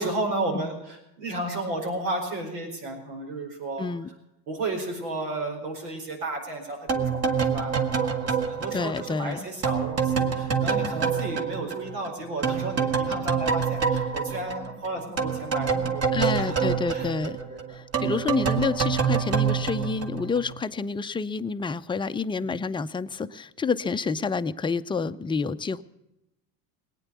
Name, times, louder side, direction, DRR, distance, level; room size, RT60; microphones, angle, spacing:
voice 1, 0.0-3.9 4.5-17.1 17.4-17.6 22.4-22.5, right 2 dB, 85° right, 3 dB, 4.7 m, -33 dB
voice 2, 3.8-4.1 8.7-9.5 16.1-17.4 17.7-25.8, left 5 dB, 10° left, 10 dB, 0.5 m, -29 dB
sound 1, 6.9-12.1 12.4-20.6, right 6 dB, 30° right, 1.7 m, -26 dB
18.5 x 9.3 x 8.3 m, 0.89 s
supercardioid pair, 90°, 46 cm